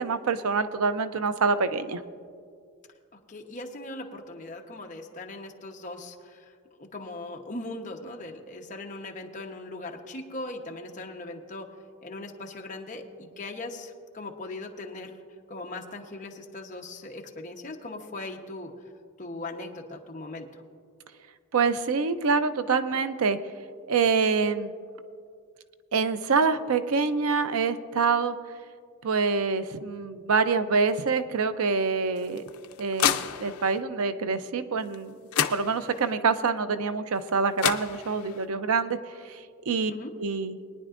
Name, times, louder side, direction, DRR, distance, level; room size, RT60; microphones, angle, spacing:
voice 1, 0.0-2.0 21.5-23.4 23.9-24.7 25.9-28.3 29.0-32.4 32.8-35.2 35.5-39.0 39.2-39.9 40.2-40.6, right 4 dB, 75° right, 11 dB, 0.5 m, -26 dB
voice 2, 3.1-11.7 12.0-15.2 15.5-18.7 19.2-20.6 39.9-40.1, left 2 dB, 35° left, 1 dB, 1.0 m, -39 dB
sound 1, 32.2-33.8 34.9-35.0 35.3-36.2 37.3-37.4 37.6-38.5, left 9 dB, 80° left, 0.5 m, -29 dB
22.0 x 10.0 x 2.5 m, 2.2 s
head